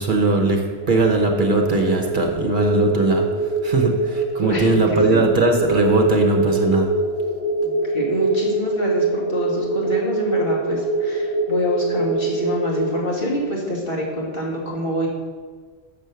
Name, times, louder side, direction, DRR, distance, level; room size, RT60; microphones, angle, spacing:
voice 1, 0.0-3.3 3.6-6.9, right 2 dB, 50° right, 3 dB, 1.0 m, -20 dB
sound 1, 0.8-12.8, right 2 dB, 20° right, 2.9 m, -23 dB
voice 2, 7.6-15.1, equal, 55° left, -5 dB, 2.3 m, -26 dB
6.8 x 6.3 x 6.8 m, 1.5 s
omnidirectional pair, 1.1 m